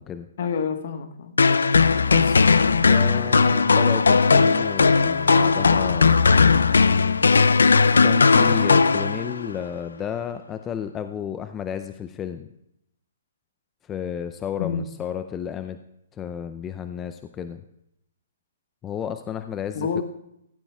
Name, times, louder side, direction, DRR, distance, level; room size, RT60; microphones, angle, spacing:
voice 1, 0.4-1.4 14.6-14.9 19.7-20.0, left 6 dB, 60° left, 8 dB, 1.3 m, -28 dB
sound 1, 1.4-9.5, left 4 dB, 85° left, 0.4 m, -17 dB
voice 2, 2.1-2.6 2.9-6.3 8.0-12.5 13.8-15.8 16.1-17.6 18.8-20.0, left 8 dB, 20° left, 9 dB, 0.5 m, -32 dB
16.5 x 14.5 x 2.3 m, 0.80 s
hypercardioid pair, 135°, 0 cm